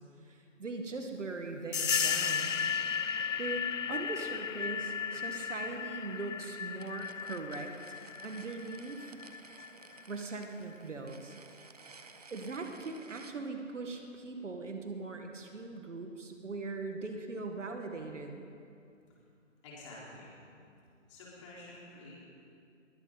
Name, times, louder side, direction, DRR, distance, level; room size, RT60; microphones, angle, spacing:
voice 1, 0.3-2.6 3.4-7.7 8.2-9.2 10.1-11.4 12.3-18.5, right 3 dB, 70° right, 4 dB, 2.0 m, -40 dB
sound 1, 1.7-10.0, left 7 dB, 75° left, 0.8 m, -35 dB
sound 2, 6.8-13.4, right 4 dB, 30° right, 0.6 m, -55 dB
voice 2, 19.6-20.3 21.1-22.1, left 2 dB, 25° left, -6 dB, 4.3 m, -49 dB
22.0 x 15.5 x 4.2 m, 2.5 s
figure-of-eight pair, 155°, 38 cm